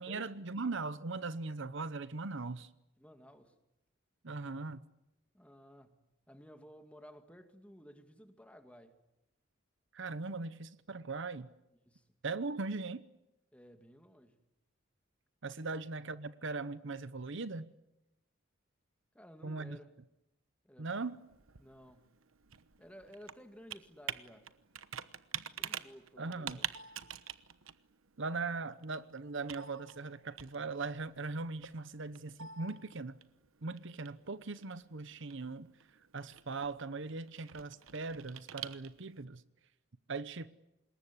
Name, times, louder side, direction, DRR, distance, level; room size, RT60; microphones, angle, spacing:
voice 1, 0.0-2.7 4.2-4.8 9.9-11.5 12.2-13.1 15.4-17.7 19.4-19.8 20.8-21.2 26.2-26.6 28.2-33.2 33.6-35.7 36.1-39.4 40.1-40.5, right 3 dB, 60° right, 0.9 m, -39 dB
voice 2, 3.0-3.6 5.3-6.0 6.3-8.9 11.9-12.1 13.5-14.4 15.7-15.8 19.1-19.9 20.6-21.0 21.6-22.1 22.8-24.5 25.6-26.7, equal, 5° left, 2.2 m, -55 dB
Computer keyboard, 20.9-39.2, right 9 dB, 80° right, 1.1 m, -48 dB
26.5 x 21.5 x 9.8 m
head